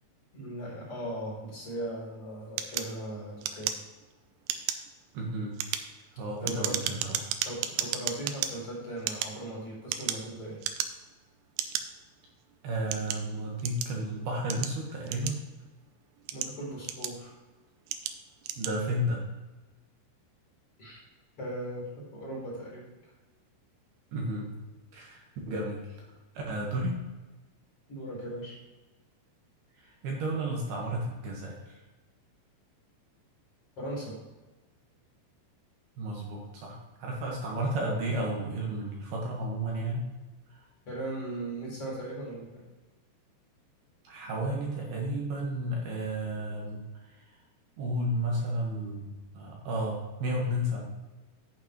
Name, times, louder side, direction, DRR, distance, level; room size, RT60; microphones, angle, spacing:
voice 1, 0.3-3.7 6.4-6.8 7.4-10.6 16.3-17.3 20.8-21.0 21.4-22.8 27.9-28.6 33.8-34.2 40.9-42.6, right 1 dB, 35° left, -5 dB, 4.4 m, -38 dB
sound 1, 2.6-4.1 4.4-4.9 5.4-8.5 9.0-10.3 10.6-11.1 11.6-11.8 12.5-14.0 14.5-15.7 16.1-17.3 17.9-18.2 18.4-18.8, right 10 dB, 80° right, 2.6 m, -33 dB
voice 2, 5.1-5.6 6.2-7.3 12.6-15.4 18.6-19.2 24.1-24.5 24.9-26.0 26.3-27.0 29.8-31.8 36.0-40.0 40.5-40.6 44.0-46.8 47.1-47.2 47.8-50.8, right 1 dB, 65° right, -2 dB, 3.1 m, -32 dB
11.0 x 9.7 x 3.1 m, 1.2 s
omnidirectional pair, 5.3 m